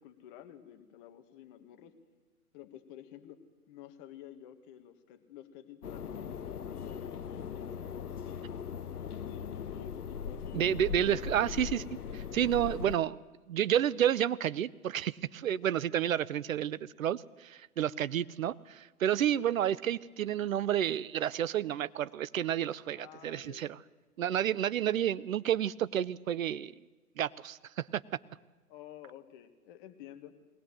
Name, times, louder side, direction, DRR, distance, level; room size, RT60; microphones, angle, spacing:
voice 1, 0.0-2.0 2.5-3.4 3.7-8.6 9.2-11.5 18.1-18.2 22.9-23.7 28.7-30.3, left 11 dB, 35° left, 7 dB, 1.9 m, -51 dB
sound 1, 5.8-13.0, left 7 dB, 80° left, 0.9 m, -40 dB
voice 2, 10.5-11.8 12.1-13.2 13.5-23.8 24.2-26.7 27.2-28.0, right 10 dB, 65° right, 18 dB, 0.7 m, -30 dB
20.5 x 19.0 x 7.7 m, 1.2 s
figure-of-eight pair, 120°, 45 cm